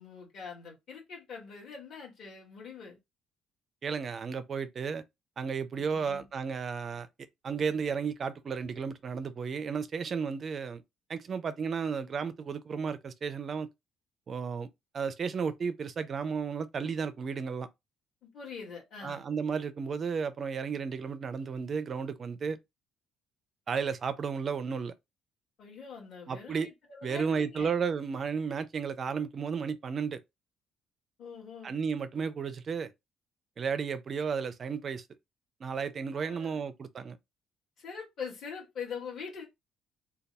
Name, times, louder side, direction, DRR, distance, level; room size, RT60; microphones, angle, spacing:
voice 1, 0.0-3.0 5.7-6.3 18.3-19.2 25.6-27.7 31.2-31.7 36.1-36.6 37.8-39.4, left 6 dB, 45° left, 1.8 m, -43 dB
voice 2, 3.8-5.0 5.4-7.1 7.4-10.8 11.1-13.7 14.3-14.7 14.9-17.7 19.0-22.6 23.7-24.9 26.3-26.7 27.0-30.2 31.6-32.9 33.6-35.0 35.6-37.2, right 6 dB, 30° right, 0.4 m, -33 dB
3.3 x 2.2 x 4.1 m
cardioid pair, 175°, 0 cm